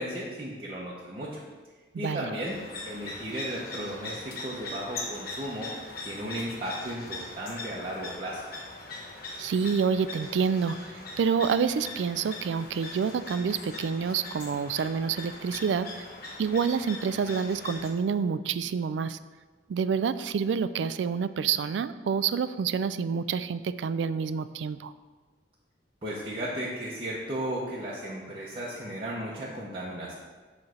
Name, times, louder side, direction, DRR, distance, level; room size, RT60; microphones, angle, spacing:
voice 1, 0.0-1.4 2.0-2.6 2.9-8.4 26.0-30.1, equal, 30° right, -6 dB, 0.8 m, -35 dB
sound 1, 2.4-17.9, left 2 dB, 55° left, 1.2 m, -41 dB
voice 2, 9.4-16.1 16.4-19.2 19.7-24.9, right 6 dB, 85° right, 14 dB, 0.3 m, -28 dB
7.1 x 3.2 x 6.2 m, 1.4 s
head